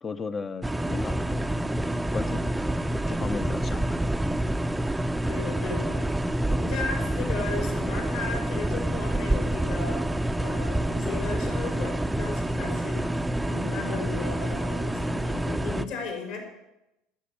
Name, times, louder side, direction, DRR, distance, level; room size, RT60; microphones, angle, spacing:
voice 1, 0.0-1.5 2.1-2.8 3.1-4.0, left 4 dB, 25° left, 12 dB, 0.8 m, -35 dB
sound 1, 0.6-15.8, right 1 dB, 5° right, 0.7 m, -27 dB
voice 2, 5.3-13.1 13.4-16.4, left 4 dB, 60° left, 3 dB, 4.3 m, -36 dB
13.5 x 6.8 x 9.7 m, 0.90 s
figure-of-eight pair, 65°, 0 cm